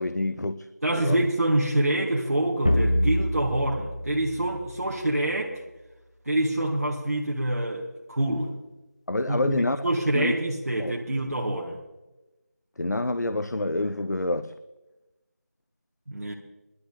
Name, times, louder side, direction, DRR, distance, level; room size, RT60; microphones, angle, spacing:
voice 1, 0.0-0.7 0.9-1.3 9.1-10.3 10.8-11.0 12.8-14.5, left 2 dB, 90° left, 12 dB, 0.6 m, -27 dB
voice 2, 0.8-5.6 6.2-8.6 9.3-11.8 16.1-16.3, right 1 dB, 60° right, -2 dB, 1.6 m, -26 dB
sound 1, 2.7-5.3, equal, 25° left, 0.5 m, -27 dB
19.0 x 11.5 x 3.7 m, 1.1 s
figure-of-eight pair, 175°, 9 cm